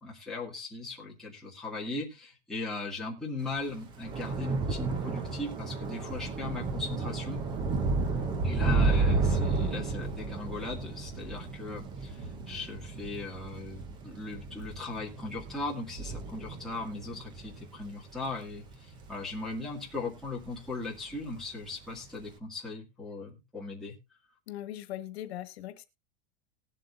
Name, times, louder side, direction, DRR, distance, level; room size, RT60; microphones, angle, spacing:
voice 1, 0.0-7.4 8.4-24.0, left 3 dB, ahead, 2.0 m, -38 dB
Thunder / Rain, 3.5-20.1 20.4-20.9 21.1-21.3, right 3 dB, 15° right, 0.6 m, -32 dB
voice 2, 8.3-8.8 24.5-25.9, left 13 dB, 85° left, 1.4 m, -41 dB
19.5 x 7.7 x 2.5 m
supercardioid pair, 180°, 31 cm